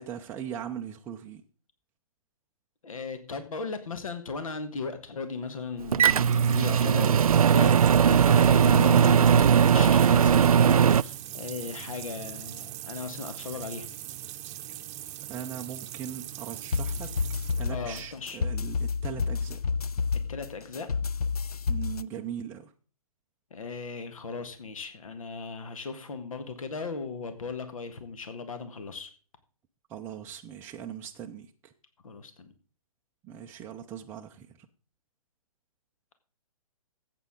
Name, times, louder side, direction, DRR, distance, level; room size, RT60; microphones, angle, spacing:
voice 1, 0.0-1.4 15.3-17.1 17.6-19.6 21.7-22.7 29.9-31.5 33.2-34.7, right 9 dB, 10° right, 0.5 m, -39 dB
voice 2, 2.8-13.9 17.7-18.4 20.3-20.9 23.5-29.1 32.0-32.5, left 4 dB, 65° left, 1.7 m, -37 dB
sound 1, 5.8-18.2, right 13 dB, 25° right, 0.9 m, -41 dB
Microwave oven, 5.9-11.0, right 8 dB, 75° right, 0.4 m, -19 dB
sound 2, 16.7-22.0, left 5 dB, 80° left, 0.5 m, -30 dB
14.0 x 8.4 x 3.7 m
figure-of-eight pair, 130°, 19 cm